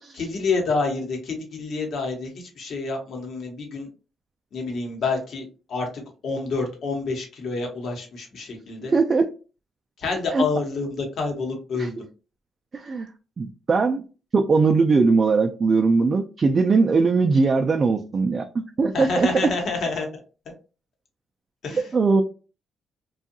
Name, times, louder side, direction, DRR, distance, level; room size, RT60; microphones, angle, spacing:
voice 1, 0.1-3.9 4.5-8.9 10.0-11.9 18.9-20.2 21.6-21.9, left 3 dB, 65° left, 1.0 m, -28 dB
voice 2, 8.9-9.3 10.3-10.4 11.8-11.9 12.7-13.1 13.4-14.0 14.3-18.4 18.8-19.3 21.7-22.2, right 4 dB, 40° right, 0.3 m, -20 dB
2.7 x 2.3 x 2.6 m
cardioid pair, 95°, 0 cm